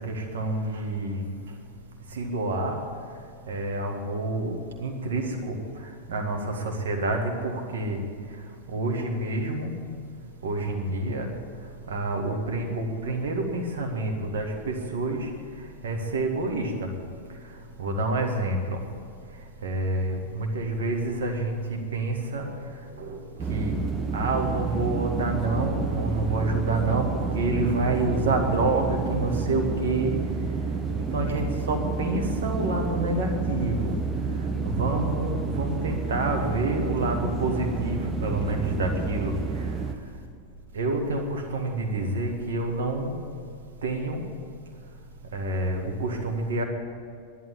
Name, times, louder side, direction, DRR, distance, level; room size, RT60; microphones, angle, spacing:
voice 1, 0.1-1.2 2.1-2.8 3.5-5.5 6.1-8.0 8.7-9.7 10.4-11.3 11.9-15.3 15.8-16.9 17.8-18.8 19.6-21.6 21.9-22.5 23.0-23.2 23.5-23.8 24.1-30.1 31.1-33.9 34.6-39.3 40.7-43.2 43.8-44.2 45.3-46.6, right 2 dB, 60° right, 3 dB, 1.9 m, -28 dB
sound 1, 23.4-40.0, right 5 dB, 15° right, 0.8 m, -30 dB
11.0 x 11.0 x 8.7 m, 2.2 s
figure-of-eight pair, 90°, 0 cm